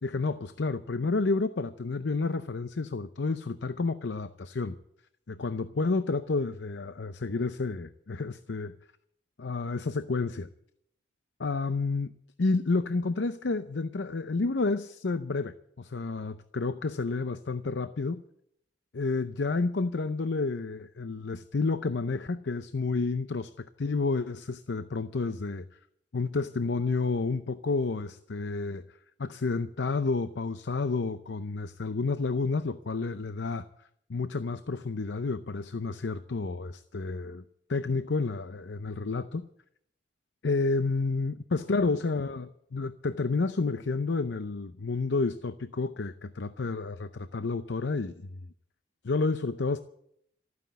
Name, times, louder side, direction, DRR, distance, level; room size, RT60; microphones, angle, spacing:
voice 1, 0.0-4.8 5.3-8.7 9.4-10.5 11.4-12.1 12.4-18.2 18.9-25.6 26.1-28.8 29.2-33.7 34.1-37.4 37.7-39.4 40.4-48.2 49.0-49.8, left 3 dB, 80° left, 11 dB, 0.6 m, -30 dB
14.0 x 9.6 x 9.2 m, 0.73 s
head